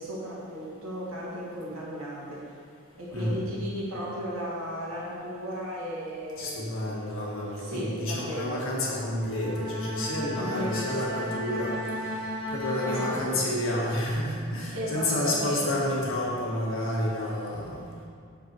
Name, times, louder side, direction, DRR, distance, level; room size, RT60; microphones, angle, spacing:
voice 1, 0.0-2.6 3.0-6.9 7.6-8.7 10.3-11.3 12.8-13.5 14.7-15.7, equal, 75° right, -5 dB, 1.9 m, -35 dB
voice 2, 6.4-11.8 12.5-17.8, left 1 dB, 65° left, -4 dB, 1.7 m, -30 dB
Bowed string instrument, 9.2-13.9, left 1 dB, 5° right, 1.4 m, -35 dB
6.8 x 6.0 x 4.6 m, 2.2 s
head